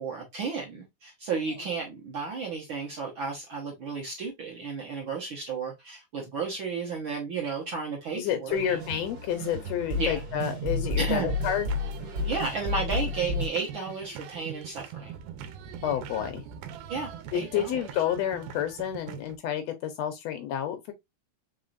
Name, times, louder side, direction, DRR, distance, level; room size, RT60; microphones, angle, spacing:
voice 1, 0.0-8.8 10.0-10.2 11.0-11.3 12.2-15.2 16.9-17.8, right 5 dB, 60° right, 1.3 m, -33 dB
voice 2, 8.1-11.7 15.8-16.4 17.3-20.9, left 10 dB, 80° left, 1.5 m, -30 dB
sound 1, 8.5-13.5, left 2 dB, 40° right, 1.8 m, -31 dB
sound 2, 11.3-19.4, right 8 dB, 80° right, 2.2 m, -42 dB
4.8 x 3.7 x 2.5 m
omnidirectional pair, 3.7 m